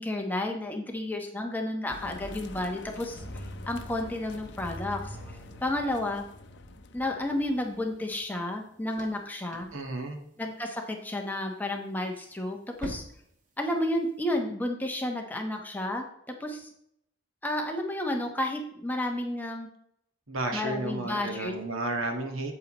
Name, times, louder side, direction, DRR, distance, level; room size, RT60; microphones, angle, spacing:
voice 1, 0.0-6.2 6.9-9.7 10.4-13.0 13.6-16.7 17.4-19.7 20.5-21.5, left 1 dB, 10° left, 2 dB, 1.0 m, -32 dB
sound 1, 1.9-8.4, left 2 dB, 55° left, 0.7 m, -47 dB
sound 2, 3.2-7.9 8.2-8.3, equal, 10° right, 2.8 m, -45 dB
sound 3, 7.3-14.4, equal, 40° right, 1.4 m, -49 dB
voice 2, 9.7-10.2 20.3-22.5, right 2 dB, 80° right, 4 dB, 1.6 m, -32 dB
8.4 x 8.2 x 3.0 m, 0.72 s
head